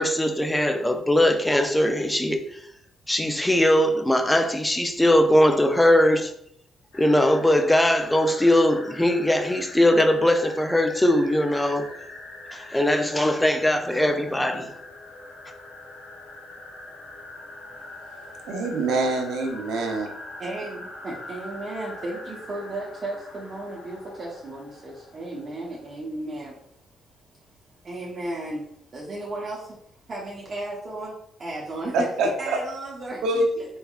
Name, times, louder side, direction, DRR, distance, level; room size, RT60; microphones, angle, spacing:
voice 1, 0.0-2.6 3.1-6.3 6.9-11.9 12.5-14.7, left 1 dB, 10° left, 0.5 m, -20 dB
sound 1, 6.9-26.0, left 2 dB, 80° left, 1.4 m, -43 dB
voice 2, 18.5-20.1 31.9-32.6 33.2-33.5, right 2 dB, 85° right, 0.8 m, -24 dB
voice 3, 20.4-26.6 27.8-28.7 28.9-29.8 30.1-32.1 32.4-33.7, right 2 dB, 40° right, 0.9 m, -34 dB
4.4 x 3.5 x 2.4 m
cardioid pair, 90°, 0 cm